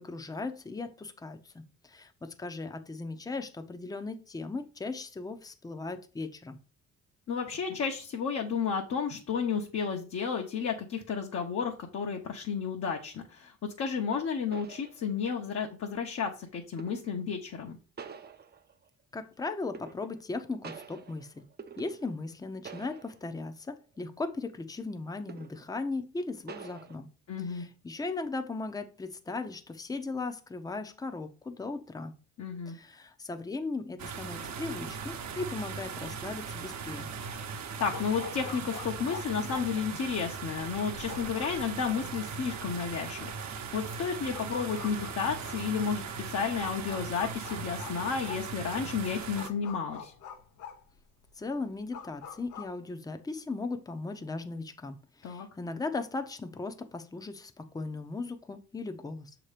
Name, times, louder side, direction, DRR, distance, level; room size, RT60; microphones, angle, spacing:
voice 1, 0.0-6.6 19.1-21.5 21.8-27.1 27.4-32.1 32.7-37.1 51.3-59.3, left 3 dB, 10° left, 0.6 m, -37 dB
voice 2, 7.3-17.8 27.3-27.6 32.4-32.7 37.8-50.1 55.2-55.5, left 6 dB, 55° left, 0.9 m, -32 dB
sound 1, 14.5-15.5 16.8-17.3 18.0-18.9 19.7-20.4 20.6-22.4 22.7-23.4 23.8-24.0 25.3-25.8 26.5-27.0, right 6 dB, 35° right, 0.6 m, -47 dB
sound 2, 34.0-49.5, right 5 dB, 65° right, 0.9 m, -39 dB
sound 3, 37.9-52.7, left 6 dB, 85° left, 0.9 m, -46 dB
6.4 x 3.0 x 5.0 m
cardioid pair, 90°, 30 cm